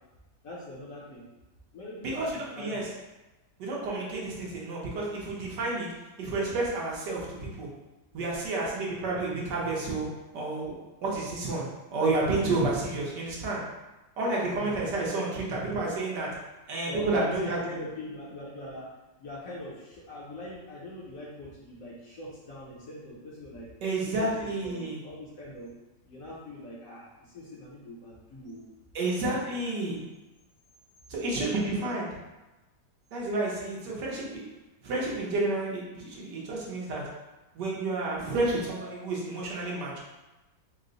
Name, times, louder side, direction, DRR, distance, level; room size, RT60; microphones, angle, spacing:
voice 1, 0.4-1.2 1.7-2.8 8.1-8.2 14.5-14.9 16.9-18.9 19.2-23.7 24.0-24.3 24.6-25.7 26.0-28.6 29.5-30.0 38.6-39.0, left 1 dB, 60° left, -6 dB, 1.1 m, -42 dB
voice 2, 2.0-2.8 3.6-5.9 6.2-7.7 8.1-10.1 10.3-10.7 11.0-11.6 11.9-13.6 14.2-16.3 16.7-17.6 23.8-25.0 28.9-30.0 31.1-32.1 33.1-34.4 34.8-37.0 37.5-40.0, right 2 dB, 70° right, -4 dB, 1.5 m, -30 dB
4.8 x 2.2 x 3.8 m, 1.1 s
omnidirectional pair, 2.0 m